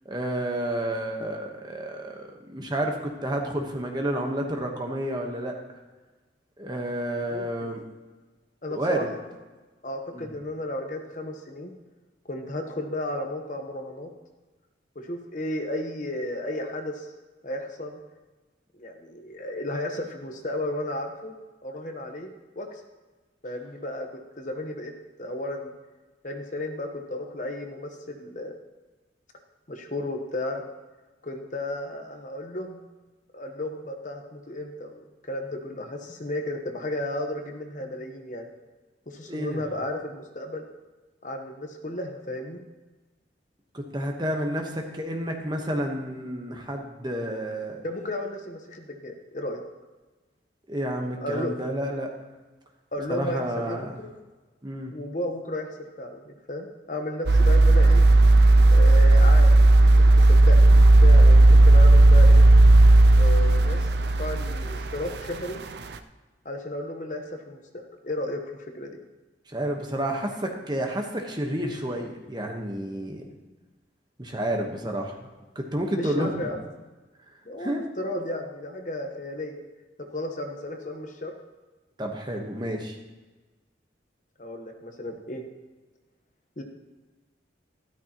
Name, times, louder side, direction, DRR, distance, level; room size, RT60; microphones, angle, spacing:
voice 1, 0.0-5.6 6.6-7.8 8.7-9.1 10.1-10.3 39.3-39.6 43.7-47.8 50.7-52.1 53.1-54.0 54.6-54.9 69.5-73.3 74.2-75.2 75.5-76.5 77.6-77.8 82.0-83.0, right 1 dB, 25° right, 2 dB, 1.1 m, -30 dB
voice 2, 7.3-7.7 8.6-9.2 9.8-11.7 12.3-14.1 14.9-17.1 17.4-18.0 18.8-21.3 21.6-22.3 22.6-22.8 23.4-24.1 24.4-24.9 25.2-25.7 26.2-28.5 29.7-30.6 31.2-32.8 33.3-35.0 35.3-38.5 39.1-40.7 41.2-42.6 47.8-49.6 51.2-51.6 52.9-54.1 54.9-55.7 56.0-58.0 58.7-59.5 59.8-62.4 63.1-63.9 64.2-65.6 66.4-69.0 75.9-76.6 77.4-79.6 80.1-81.3 84.4-85.4 86.6-86.7, left 1 dB, 40° left, 4 dB, 1.0 m, -33 dB
sound 1, 57.3-65.5 65.9-66.0, right 2 dB, 60° right, 0.5 m, -15 dB
13.0 x 12.5 x 3.0 m, 1.2 s
head